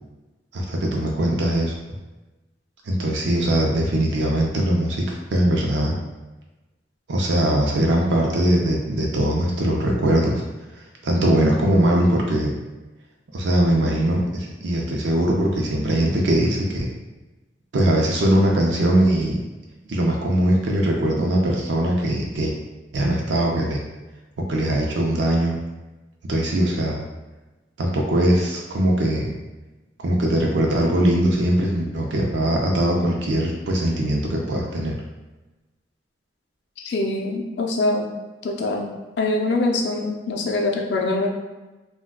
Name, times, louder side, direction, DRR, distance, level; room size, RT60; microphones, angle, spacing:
voice 1, 0.5-1.7 2.9-6.0 7.1-10.4 10.8-12.5 13.3-16.9 17.7-19.4 19.9-22.5 22.9-23.8 24.4-25.6 26.3-27.0 27.8-29.3 30.0-35.0, right 1 dB, 80° right, -1 dB, 0.5 m, -21 dB
voice 2, 36.8-38.1 38.4-38.9 39.2-41.3, left 2 dB, 65° left, 1 dB, 0.4 m, -23 dB
3.5 x 2.2 x 2.2 m, 1.1 s
head